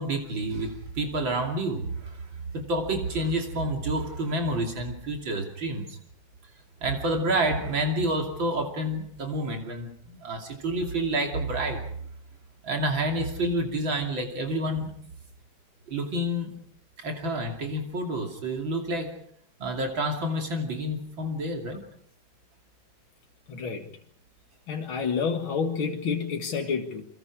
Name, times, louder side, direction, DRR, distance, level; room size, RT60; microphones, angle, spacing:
voice 1, 0.0-2.3 2.5-6.0 6.8-11.9 12.6-14.9 15.9-16.6 17.0-19.2 19.6-21.8, right 1 dB, 75° right, 3 dB, 3.6 m, -29 dB
voice 2, 23.5-23.8 24.7-27.1, left 5 dB, 90° left, 2 dB, 2.6 m, -29 dB
29.5 x 24.0 x 4.9 m, 0.63 s
omnidirectional pair, 2.1 m